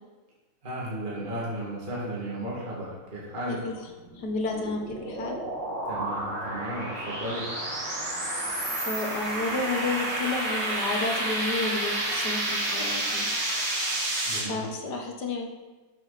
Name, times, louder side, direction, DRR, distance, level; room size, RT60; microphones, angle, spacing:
voice 1, 0.6-3.6 5.9-7.5 14.2-14.7, right 1 dB, 25° right, -6 dB, 2.2 m, -34 dB
sound 1, 4.0-14.4, right 1 dB, 55° right, 3.0 m, -30 dB
voice 2, 4.1-5.4 8.8-13.3 14.5-15.5, left 3 dB, 55° left, 2 dB, 1.6 m, -31 dB
12.0 x 7.2 x 4.2 m, 1.2 s
omnidirectional pair, 2.3 m